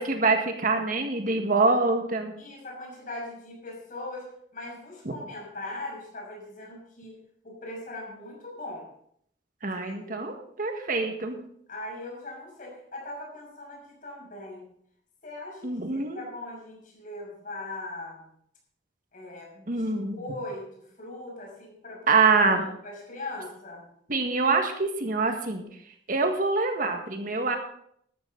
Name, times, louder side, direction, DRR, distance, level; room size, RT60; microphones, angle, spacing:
voice 1, 0.0-2.3 5.1-5.2 9.6-11.4 15.6-16.2 19.7-20.2 22.1-22.7 24.1-25.7 26.1-27.6, right 3 dB, 50° right, 5 dB, 1.6 m, -25 dB
voice 2, 2.4-7.2 7.4-8.9 9.8-10.2 11.7-14.7 15.2-18.3 19.1-19.8 20.1-20.7 21.0-22.1 22.8-23.9, left 2 dB, 50° left, -2 dB, 6.0 m, -40 dB
13.0 x 13.0 x 3.9 m, 0.67 s
head